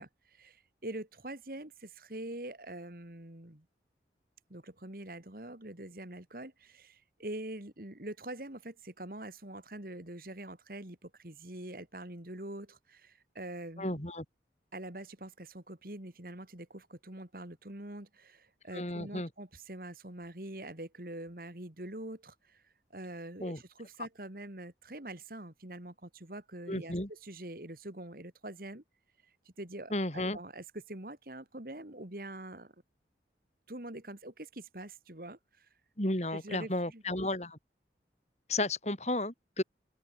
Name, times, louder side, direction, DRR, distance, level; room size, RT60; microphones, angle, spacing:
voice 1, 0.0-3.7 4.5-14.0 14.7-22.6 22.9-28.8 29.4-32.7 33.7-35.7 36.3-37.0, right 1 dB, 55° right, 2.7 m, -44 dB
voice 2, 13.8-14.2 18.7-19.3 23.4-23.6 26.7-27.1 29.9-30.4 36.0-37.6 38.5-39.6, left 1 dB, 40° left, 4.1 m, -33 dB
open air
head